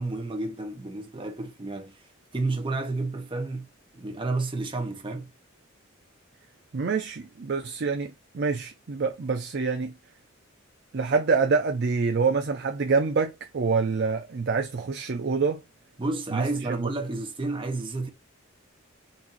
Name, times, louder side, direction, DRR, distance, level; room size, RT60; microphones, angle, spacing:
voice 1, 0.0-2.0 2.3-3.7 3.9-5.3 16.0-18.1, right 2 dB, 25° right, 0.8 m, -31 dB
voice 2, 6.7-9.9 10.9-15.6 16.3-16.9, right 4 dB, 55° right, 0.5 m, -26 dB
4.0 x 2.6 x 2.7 m
head